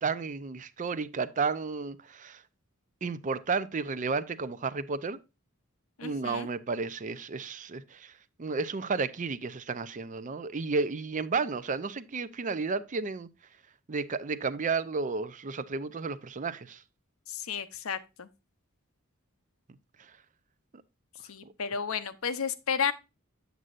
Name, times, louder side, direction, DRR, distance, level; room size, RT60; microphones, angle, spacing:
voice 1, 0.0-2.4 3.0-5.2 6.0-8.1 8.4-13.3 13.9-16.8 21.4-21.5, right 4 dB, 40° right, 0.5 m, -32 dB
voice 2, 6.0-6.5 17.3-18.3 21.2-22.9, left 6 dB, 80° left, 0.7 m, -32 dB
8.0 x 7.4 x 2.5 m
head